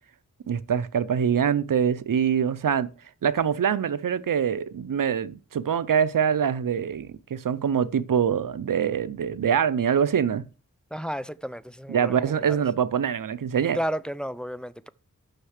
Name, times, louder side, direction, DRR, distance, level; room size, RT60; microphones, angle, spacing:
voice 1, 0.5-2.9 3.2-10.5 11.9-13.8, right 8 dB, 85° right, 0.6 m, -24 dB
voice 2, 10.9-12.6 13.7-14.9, equal, 5° left, 0.4 m, -32 dB
6.6 x 5.7 x 6.4 m
wide cardioid pair, 70°, 32 cm